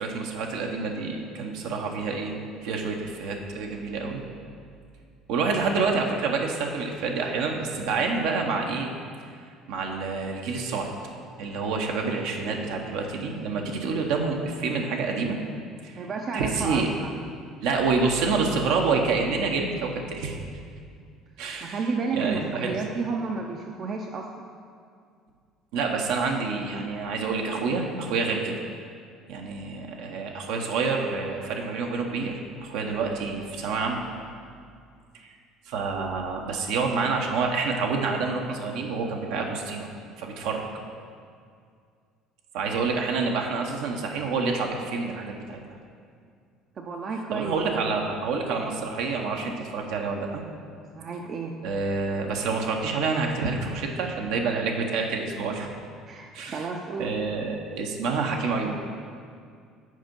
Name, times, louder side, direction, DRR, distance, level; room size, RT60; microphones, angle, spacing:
voice 1, 0.0-2.3 2.6-4.2 5.3-8.9 9.7-10.9 11.4-15.4 15.8-16.0 16.3-16.9 17.6-20.4 21.4-21.8 22.1-22.7 25.7-28.5 29.3-34.0 35.2-35.3 35.7-39.9 40.2-40.6 42.5-45.6 47.3-50.4 51.6-55.7 56.3-56.6 57.0-58.8, right 4 dB, 75° right, 1 dB, 0.8 m, -28 dB
voice 2, 16.0-17.2 21.6-24.5 46.8-47.8 51.0-51.5 56.1-57.1, right 4 dB, 45° right, 2 dB, 0.5 m, -31 dB
6.4 x 4.4 x 5.2 m, 2.2 s
supercardioid pair, 85°, 0 cm